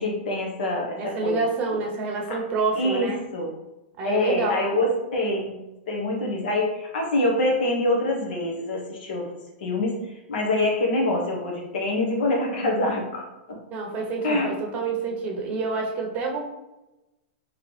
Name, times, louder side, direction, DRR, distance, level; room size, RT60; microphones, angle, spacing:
voice 1, 0.0-1.3 2.3-2.4 2.7-3.5 4.0-5.5 5.9-9.3 9.6-9.9 10.3-13.2 14.2-14.5, left 2 dB, 70° left, 0 dB, 1.3 m, -25 dB
voice 2, 1.0-3.2 4.0-4.7 13.7-16.4, right 4 dB, 25° right, 1 dB, 0.8 m, -27 dB
3.8 x 3.2 x 3.3 m, 0.99 s
hypercardioid pair, 150°, 5 cm